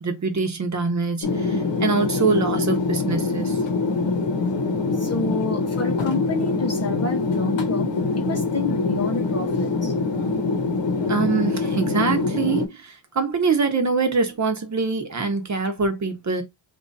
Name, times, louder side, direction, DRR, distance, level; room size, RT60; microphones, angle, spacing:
voice 1, 0.0-3.6 11.1-16.4, right 4 dB, 35° right, 0.9 m, -24 dB
sound 1, 1.2-12.7, left 3 dB, 65° left, 1.1 m, -24 dB
voice 2, 4.7-9.9, left 2 dB, 35° left, 0.5 m, -29 dB
2.9 x 2.6 x 3.9 m
cardioid pair, 115°, 48 cm